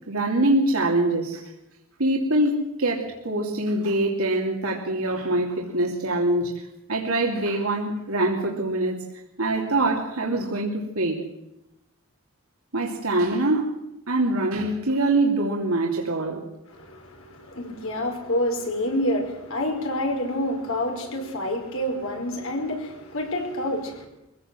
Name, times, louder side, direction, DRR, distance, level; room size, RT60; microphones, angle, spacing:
voice 1, 0.1-1.4 2.0-9.0 9.4-11.2 12.7-13.8 14.1-16.5, right 2 dB, 80° right, 0 dB, 2.7 m, -24 dB
voice 2, 16.7-24.1, left 1 dB, 70° left, 3 dB, 5.0 m, -28 dB
23.5 x 16.5 x 7.6 m, 0.90 s
head